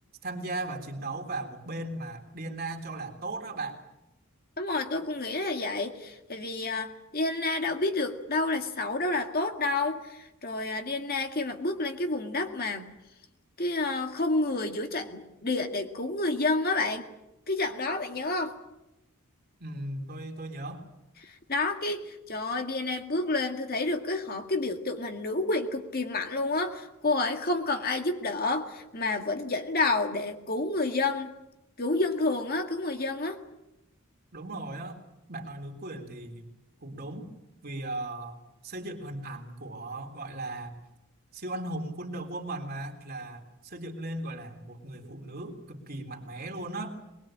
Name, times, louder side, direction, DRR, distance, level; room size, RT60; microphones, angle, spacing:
voice 1, 0.2-3.8 19.6-20.8 34.3-35.0 35.3-36.5 36.8-37.3 37.6-38.4 38.6-40.7 41.3-47.0, right 2 dB, 45° right, 3 dB, 3.4 m, -37 dB
voice 2, 4.6-12.9 13.6-17.1 17.5-18.5 21.2-31.3 31.8-33.4, left 2 dB, 45° left, 5 dB, 2.1 m, -29 dB
23.0 x 21.0 x 8.8 m, 0.92 s
head